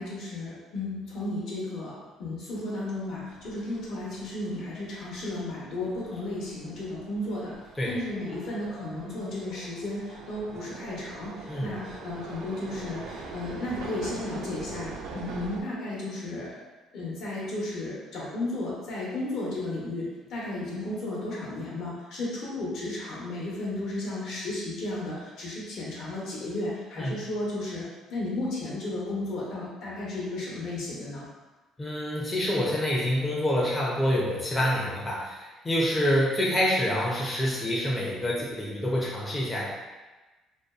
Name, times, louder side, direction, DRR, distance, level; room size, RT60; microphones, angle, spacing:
voice 1, 0.0-7.5 7.9-16.5 16.9-27.8 28.1-31.2, left 2 dB, 65° left, -5 dB, 0.8 m, -34 dB
sound 1, 3.0-15.6, right 4 dB, 75° right, 0.3 m, -43 dB
voice 2, 31.8-39.7, equal, 15° left, -5 dB, 0.4 m, -27 dB
2.5 x 2.3 x 2.3 m, 1.2 s
cardioid pair, 130°, 0 cm